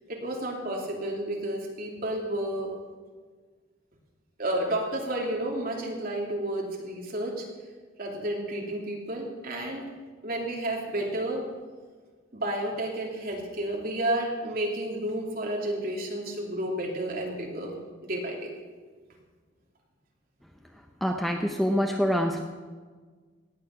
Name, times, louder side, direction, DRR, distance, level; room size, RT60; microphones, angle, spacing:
voice 1, 0.1-2.7 4.4-7.4 8.0-9.8 10.2-11.4 12.3-17.7 18.0-18.5, right 1 dB, 50° right, -1 dB, 2.9 m, -31 dB
voice 2, 21.0-22.4, equal, ahead, 3 dB, 0.7 m, -25 dB
17.5 x 9.1 x 5.8 m, 1.5 s
head